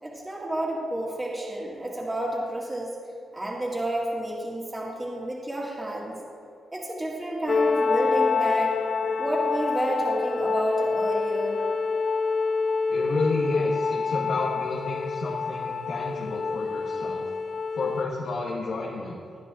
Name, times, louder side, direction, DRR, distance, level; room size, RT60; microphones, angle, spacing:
voice 1, 0.0-2.9 3.3-6.2 6.7-8.8 9.2-11.6, right 1 dB, 15° right, -4 dB, 1.8 m, -30 dB
sound 1, 7.5-18.1, left 4 dB, 45° left, 0.4 m, -27 dB
voice 2, 12.9-17.3 17.7-19.2, left 3 dB, 75° left, -2 dB, 1.2 m, -30 dB
20.0 x 9.5 x 2.4 m, 2.4 s
cardioid pair, 90°, 0 cm